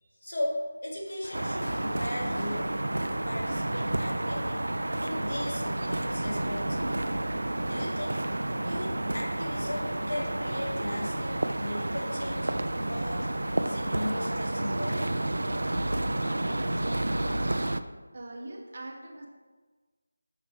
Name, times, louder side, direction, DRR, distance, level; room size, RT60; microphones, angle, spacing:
voice 1, 0.0-2.7 3.1-4.6 5.0-7.0 7.7-8.1 8.6-12.5 12.9-15.1, left 1 dB, 70° left, -2 dB, 1.6 m, -37 dB
sound 1, 1.1-4.0 5.1-6.2, left 1 dB, 90° left, 0.8 m, -49 dB
sound 2, 1.3-17.8, right 1 dB, 85° right, 0.3 m, -30 dB
voice 2, 18.1-19.3, right 2 dB, 40° right, 1 dB, 0.8 m, -41 dB
5.9 x 5.8 x 3.2 m, 1.4 s
figure-of-eight pair, 175°, 0 cm